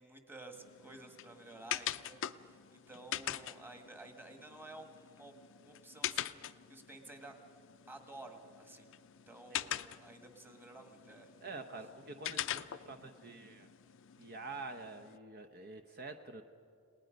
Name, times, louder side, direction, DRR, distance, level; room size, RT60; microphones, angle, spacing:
voice 1, 0.0-5.3 5.6-7.3 7.9-8.9 9.3-11.3, right 2 dB, 10° right, 4 dB, 1.6 m, -53 dB
sound 1, 0.5-15.2, left 12 dB, 60° left, 0.5 m, -44 dB
voice 2, 11.4-13.7 14.2-16.4, right 3 dB, 45° right, 7 dB, 0.8 m, -47 dB
29.5 x 19.0 x 5.2 m, 2.3 s
head